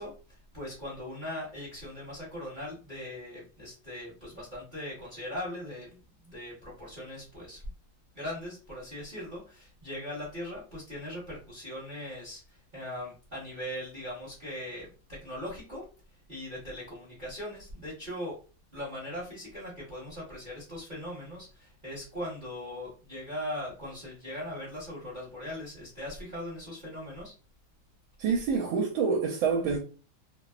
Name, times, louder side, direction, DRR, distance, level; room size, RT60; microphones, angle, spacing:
voice 1, 0.0-7.6 8.1-15.8 16.3-18.4 18.7-27.3, left 1 dB, 35° right, 0.9 m, -40 dB
voice 2, 28.2-29.8, right 5 dB, 80° right, 1.4 m, -27 dB
3.3 x 2.0 x 2.3 m
omnidirectional pair, 2.2 m